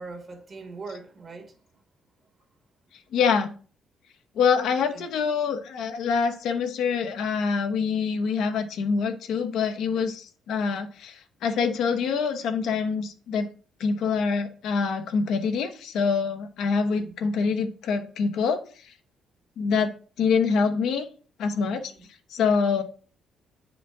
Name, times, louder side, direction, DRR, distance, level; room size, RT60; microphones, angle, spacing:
voice 1, 0.0-1.6 4.9-5.1 9.9-10.1 16.8-17.1 21.8-22.1, right 3 dB, 45° right, 1.7 m, -41 dB
voice 2, 3.1-3.5 4.3-13.5 13.8-18.9 19.6-19.9 20.2-21.1 21.4-21.9 22.3-22.8, left 5 dB, 80° left, 1.0 m, -25 dB
8.3 x 5.0 x 3.7 m
cardioid pair, 90°, 0 cm